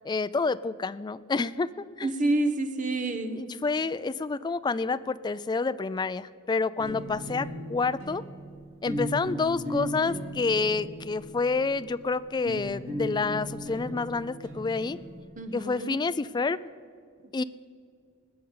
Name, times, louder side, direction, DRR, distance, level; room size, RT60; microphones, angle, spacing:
voice 1, 0.0-1.7 2.0-2.1 3.3-8.2 8.8-15.0 15.5-16.6 17.3-17.4, left 4 dB, 20° left, 15 dB, 0.3 m, -28 dB
voice 2, 2.0-3.4 15.4-16.0, right 2 dB, 40° right, 8 dB, 1.0 m, -28 dB
sound 1, 6.8-15.3, equal, 85° right, 3.5 m, -37 dB
19.0 x 6.7 x 8.5 m, 2.2 s
head